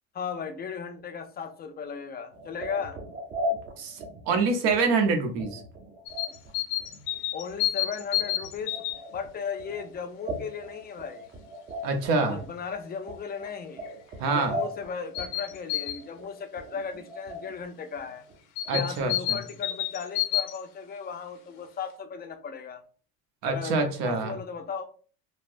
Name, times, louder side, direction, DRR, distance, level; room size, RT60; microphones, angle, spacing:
voice 1, 0.1-3.0 7.3-11.3 12.2-13.9 14.3-18.2 18.7-22.8 23.4-24.8, left 6 dB, 25° left, 8 dB, 0.4 m, -36 dB
sound 1, 2.3-17.7 18.0-18.4 18.6-18.7 19.0-19.1, left 1 dB, 30° right, 0.7 m, -39 dB
voice 2, 3.8-5.6 11.8-12.4 14.2-14.6 18.7-19.4 23.4-24.3, right 4 dB, 70° right, 5 dB, 0.8 m, -26 dB
sound 2, 6.1-9.0 13.4-13.5 13.8-13.9 15.1-16.0 18.6-20.6, left 13 dB, 75° left, 0.7 m, -29 dB
3.2 x 2.0 x 2.5 m, 0.40 s
supercardioid pair, 95°, 37 cm